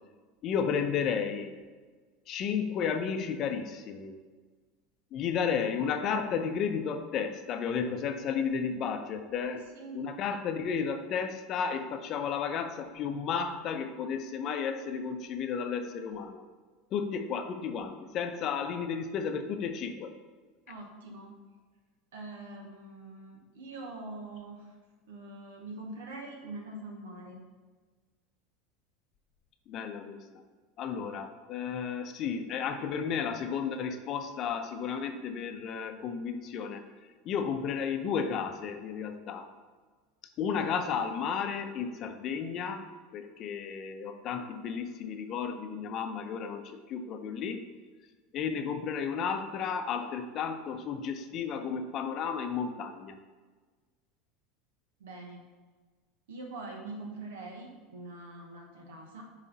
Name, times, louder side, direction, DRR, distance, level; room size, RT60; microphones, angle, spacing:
voice 1, 0.4-1.6 2.3-4.1 5.1-9.6 9.9-16.4 16.9-20.2 29.7-30.4 30.8-36.8 37.2-39.5 40.4-42.8 43.1-47.6 48.3-53.2, left 6 dB, 45° left, 7 dB, 0.7 m, -33 dB
voice 2, 20.7-21.3 22.1-24.7 25.1-27.4 55.0-55.4 56.3-59.2, right 2 dB, 75° right, 1 dB, 1.3 m, -43 dB
9.1 x 3.2 x 4.0 m, 1.4 s
hypercardioid pair, 80°, 0 cm